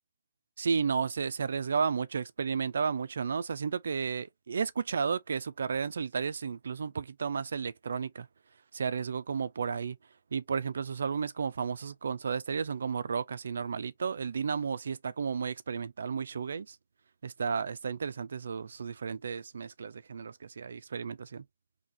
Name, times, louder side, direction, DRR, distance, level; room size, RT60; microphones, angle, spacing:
voice 1, 0.6-8.3 8.7-10.0 10.3-16.8 17.2-21.4, right 6 dB, 70° right, 0.4 m, -33 dB
3.9 x 2.8 x 2.6 m
hypercardioid pair, 170°, 0 cm